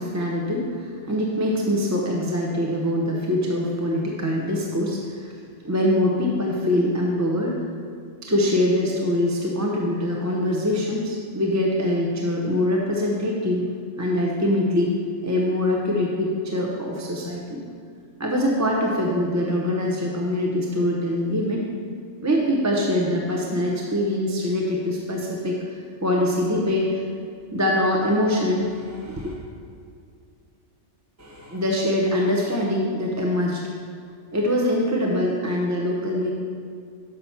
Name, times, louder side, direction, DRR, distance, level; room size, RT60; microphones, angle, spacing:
voice 1, 0.0-5.3 5.6-7.6 8.2-13.6 14.0-14.9 15.2-17.6 18.2-21.7 22.2-27.0 27.5-29.3 31.2-33.6 34.3-36.3, left 1 dB, 20° right, -1 dB, 0.6 m, -23 dB
6.6 x 5.8 x 5.6 m, 2.2 s
omnidirectional pair, 1.3 m